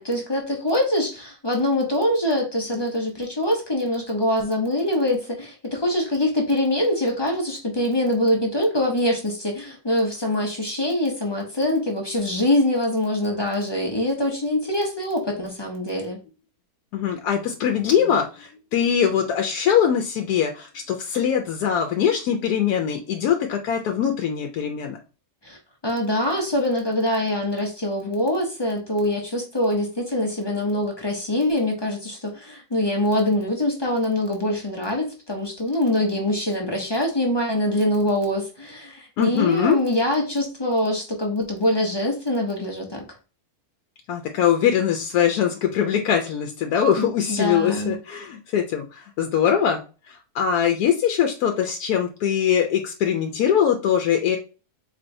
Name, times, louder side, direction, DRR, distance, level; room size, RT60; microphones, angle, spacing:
voice 1, 0.0-16.2 25.4-25.6 25.8-43.0 47.0-48.0, left 1 dB, 30° left, 0 dB, 0.5 m, -24 dB
voice 2, 16.9-25.0 39.2-39.8 44.1-54.4, left 8 dB, 75° left, 4 dB, 1.0 m, -22 dB
4.3 x 3.0 x 2.6 m, 0.33 s
omnidirectional pair, 1.7 m